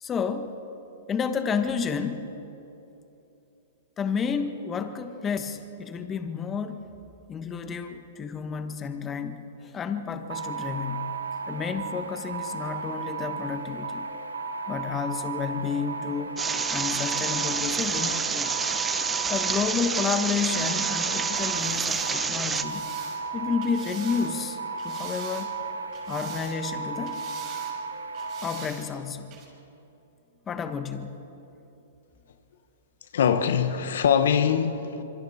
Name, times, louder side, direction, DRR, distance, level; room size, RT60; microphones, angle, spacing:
voice 1, 0.0-0.5 1.1-2.3 4.0-6.8 7.3-11.1 11.5-14.1 14.7-16.4 16.7-18.6 19.3-22.8 23.3-24.6 24.8-25.5 26.1-27.2 28.4-29.3 30.5-31.1, left 6 dB, 20° left, 1.4 m, -31 dB
sound 1, 10.3-28.6, right 4 dB, 90° right, 1.3 m, -34 dB
sound 2, 16.4-22.6, right 5 dB, 15° right, 1.1 m, -28 dB
sound 3, 21.3-24.3 24.8-25.6 25.9-26.8 27.1-27.7 28.1-28.9 29.3-29.4, right 7 dB, 40° right, 6.3 m, -44 dB
voice 2, 33.1-35.0, left 7 dB, 70° left, 1.3 m, -23 dB
26.5 x 23.5 x 4.4 m
hypercardioid pair, 125°, 0 cm